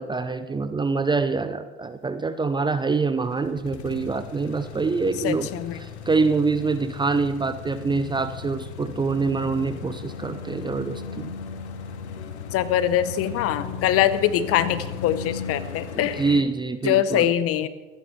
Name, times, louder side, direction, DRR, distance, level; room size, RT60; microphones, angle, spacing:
voice 1, 0.0-5.5 5.8-11.3 15.9-17.3, right 4 dB, 15° right, 10 dB, 0.6 m, -25 dB
sound 1, 2.9-16.4, left 6 dB, 75° left, 1.1 m, -37 dB
voice 2, 5.2-5.8 12.5-16.2 16.8-17.7, left 11 dB, 45° left, 15 dB, 0.8 m, -23 dB
25.0 x 10.0 x 3.3 m, 1.3 s
figure-of-eight pair, 70°, 34 cm